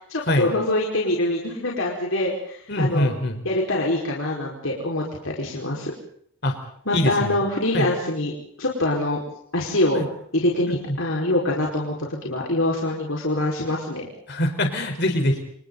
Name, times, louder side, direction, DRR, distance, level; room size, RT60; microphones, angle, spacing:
voice 1, 0.1-3.1 3.4-5.9 6.9-8.3 8.6-9.2 9.5-10.0 10.3-14.1, left 1 dB, 75° left, -2 dB, 5.1 m, -24 dB
voice 2, 2.7-3.4 6.4-6.5 6.9-7.4 7.7-7.9 9.9-10.1 10.7-10.8 14.3-15.4, left 1 dB, 55° left, 5 dB, 4.3 m, -23 dB
29.0 x 29.0 x 4.1 m, 0.66 s
head